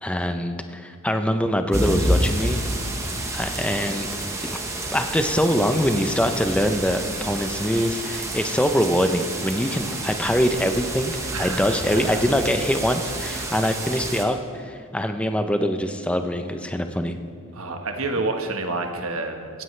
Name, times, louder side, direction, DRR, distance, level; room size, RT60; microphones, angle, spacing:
voice 1, 0.0-2.6 3.3-4.1 4.8-17.2, equal, 5° left, 6 dB, 0.6 m, -23 dB
sound 1, 1.7-14.2, right 1 dB, 15° right, 1.1 m, -29 dB
voice 2, 11.3-12.4 13.4-13.6 17.5-19.6, right 3 dB, 70° right, 4 dB, 1.3 m, -29 dB
17.5 x 15.0 x 3.3 m, 2.3 s
head